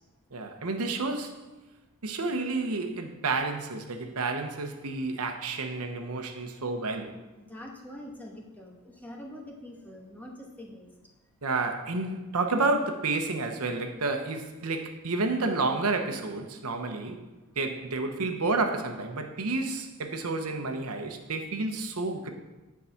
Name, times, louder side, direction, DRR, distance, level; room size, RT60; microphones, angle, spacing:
voice 1, 0.3-1.4 2.0-7.2 11.4-17.2 17.6-22.3, right 3 dB, 80° right, 0.9 m, -30 dB
voice 2, 7.3-10.9 14.6-14.8, left 1 dB, 10° left, 1.2 m, -45 dB
9.5 x 4.8 x 5.8 m
head